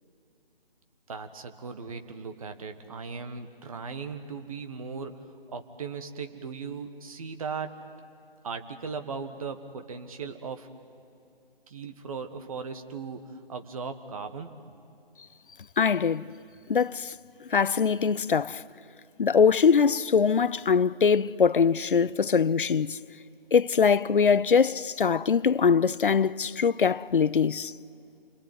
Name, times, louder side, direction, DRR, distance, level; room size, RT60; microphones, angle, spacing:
voice 1, 1.1-7.8 8.4-10.7 11.7-14.5, right 5 dB, 35° right, 1.5 m, -38 dB
voice 2, 15.8-16.3 16.7-17.1 17.5-18.6 19.2-23.0 23.5-27.7, left 6 dB, 60° left, 0.6 m, -22 dB
28.5 x 22.0 x 9.4 m
figure-of-eight pair, 150°, 30 cm